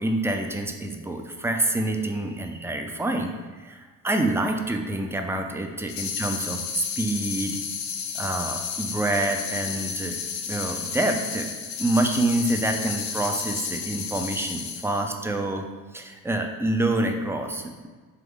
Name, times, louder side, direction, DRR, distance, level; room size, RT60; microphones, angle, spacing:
voice 1, 0.0-3.3 3.6-7.6 8.1-10.2 10.5-11.5 11.8-15.6 15.9-17.9, right 1 dB, 10° right, 4 dB, 0.3 m, -27 dB
sound 1, 5.9-15.1, left 6 dB, 85° left, 0.6 m, -32 dB
3.5 x 3.3 x 3.5 m, 1.4 s
cardioid pair, 100°, 34 cm